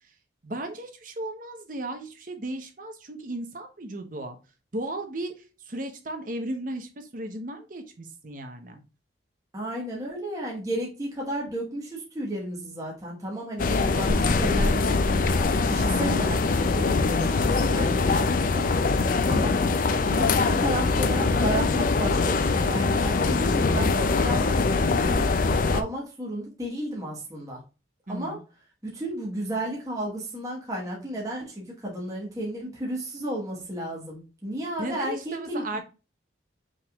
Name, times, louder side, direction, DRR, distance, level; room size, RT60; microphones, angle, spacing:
voice 1, 0.4-4.4 4.7-5.3 5.7-8.8 28.1-28.4 34.8-35.8, right 1 dB, 45° right, 5 dB, 0.9 m, -35 dB
voice 2, 9.5-15.3 15.6-16.4 16.7-18.7 19.3-19.7 20.0-25.3 25.7-27.6 28.1-28.4 28.8-35.8, right 1 dB, 20° right, -3 dB, 1.3 m, -33 dB
sound 1, 13.6-25.8, left 3 dB, 45° left, 0.4 m, -23 dB
5.4 x 3.5 x 2.3 m, 0.31 s
head